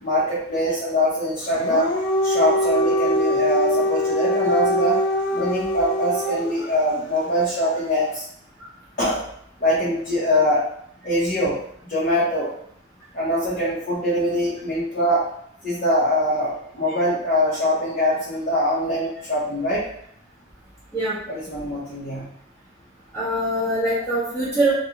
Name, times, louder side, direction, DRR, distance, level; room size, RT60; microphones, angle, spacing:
voice 1, 0.0-1.9 2.2-5.0 5.3-8.2 9.0-9.2 9.6-10.6 11.0-12.5 13.1-15.3 15.6-19.9 21.3-22.3, equal, 50° left, -10 dB, 0.8 m, -23 dB
Dog, 1.5-6.7, left 1 dB, 75° left, 0.4 m, -23 dB
voice 2, 23.1-24.7, right 1 dB, 10° left, -12 dB, 0.7 m, -23 dB
2.5 x 2.3 x 2.8 m, 0.68 s
head